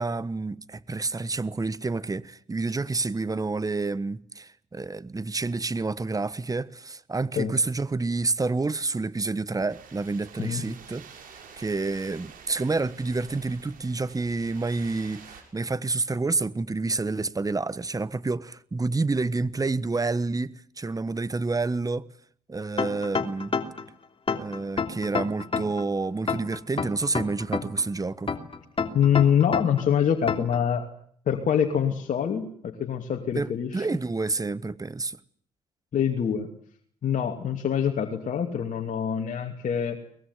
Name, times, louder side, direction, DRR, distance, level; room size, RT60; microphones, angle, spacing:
voice 1, 0.0-11.1 11.6-22.1 22.5-23.5 24.3-28.3 33.3-35.2, right 3 dB, 25° right, 1.3 m, -29 dB
sound 1, 9.7-15.4, right 7 dB, 65° right, 6.8 m, -48 dB
sound 2, 22.8-23.9 24.3-25.8 26.3-27.8 28.3-29.8 30.3-30.6, left 5 dB, 35° left, 3.0 m, -28 dB
voice 2, 28.9-30.9 31.3-33.9 35.9-36.5 37.0-40.0, left 8 dB, 60° left, 2.6 m, -25 dB
23.0 x 20.5 x 9.7 m
hypercardioid pair, 50°, 15 cm